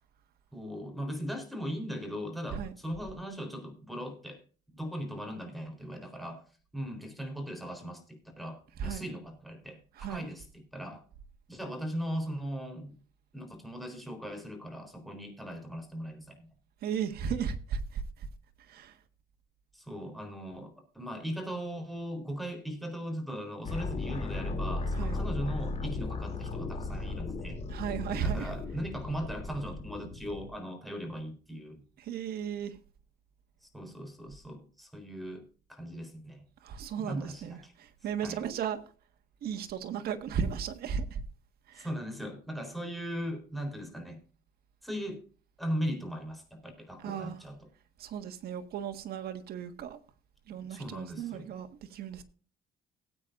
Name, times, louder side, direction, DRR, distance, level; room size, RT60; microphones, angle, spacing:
voice 1, 0.5-4.4 4.7-6.4 6.7-11.0 11.5-13.0 13.3-16.5 19.7-27.6 28.2-31.8 33.6-36.4 37.0-37.7 38.2-38.4 41.8-44.2 44.8-45.2 45.6-47.6 50.7-51.5, equal, ahead, 4.0 m, -39 dB
voice 2, 9.9-10.3 16.8-18.3 18.6-19.0 24.9-25.2 27.7-28.5 32.0-32.8 36.6-38.8 39.4-41.2 41.7-41.9 47.0-47.4 48.0-50.0 50.5-52.2, right 7 dB, 65° right, 1.7 m, -35 dB
sound 1, 23.6-30.5, left 3 dB, 40° left, 3.0 m, -36 dB
18.5 x 8.8 x 2.6 m
cardioid pair, 110°, 17 cm